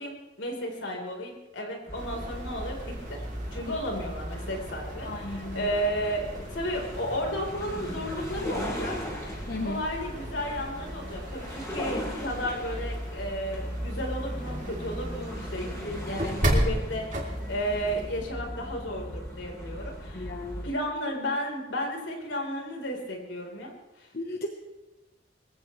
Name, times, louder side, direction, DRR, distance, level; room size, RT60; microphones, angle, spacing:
voice 1, 0.0-3.2 3.5-9.0 9.6-20.3 20.6-23.7 24.0-24.1, equal, 85° left, 0 dB, 4.4 m, -33 dB
sound 1, 1.9-20.7, equal, 15° left, 6.6 m, -37 dB
sound 2, 1.9-18.2, right 1 dB, 45° right, 3.2 m, -36 dB
voice 2, 5.0-5.7 9.5-9.8 20.1-20.7 24.1-24.5, left 2 dB, 55° left, 3 dB, 1.2 m, -35 dB
22.5 x 16.0 x 3.3 m, 1.0 s
head